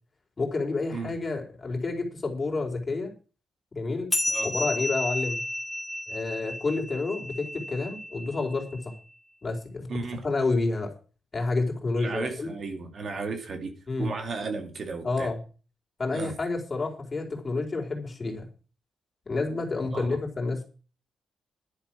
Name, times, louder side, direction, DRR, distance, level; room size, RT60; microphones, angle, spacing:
voice 1, 0.4-3.1 3.7-4.1 4.4-5.4 6.1-8.9 9.4-10.9 11.3-12.5 13.9-14.1 15.0-15.4 16.0-18.5 19.3-20.6, left 3 dB, 30° left, 4.4 m, -29 dB
sound 1, 4.1-9.0, left 1 dB, 10° left, 2.6 m, -32 dB
voice 2, 9.9-10.2 12.0-15.3 16.1-16.3 19.9-20.2, right 4 dB, 50° right, 2.6 m, -34 dB
11.5 x 9.9 x 6.2 m
cardioid pair, 100°, 0 cm